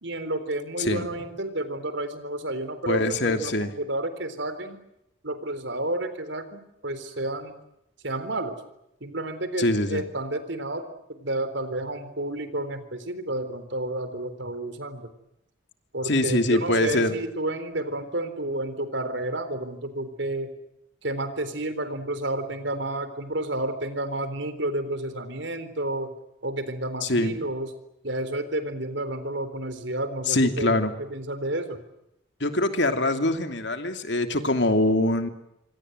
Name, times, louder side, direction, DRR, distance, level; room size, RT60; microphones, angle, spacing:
voice 1, 0.0-4.8 5.2-7.5 8.0-8.5 9.0-10.8 11.2-15.1 15.9-20.5 21.0-26.1 26.4-27.7 28.0-30.8 31.1-31.8, right 1 dB, 65° right, 11 dB, 3.9 m, -31 dB
voice 2, 2.9-3.7 9.6-10.0 16.0-17.2 27.0-27.4 30.3-30.9 32.4-35.3, left 1 dB, 60° left, 7 dB, 2.9 m, -23 dB
26.5 x 26.0 x 8.0 m, 0.82 s
head